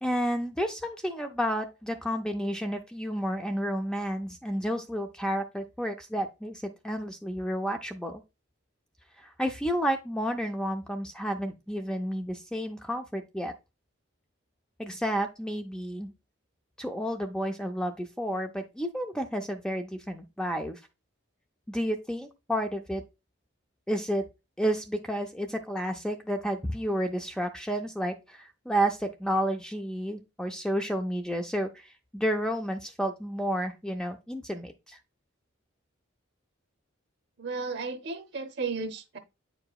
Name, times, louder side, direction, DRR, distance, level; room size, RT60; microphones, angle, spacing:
voice 1, 0.0-8.2 9.2-13.5 14.8-16.1 16.8-20.8 21.7-23.0 23.9-24.3 24.6-35.0, equal, 5° left, 0.4 m, -31 dB
voice 2, 37.4-39.2, right 4 dB, 55° right, 0.8 m, -34 dB
8.6 x 4.7 x 2.3 m
head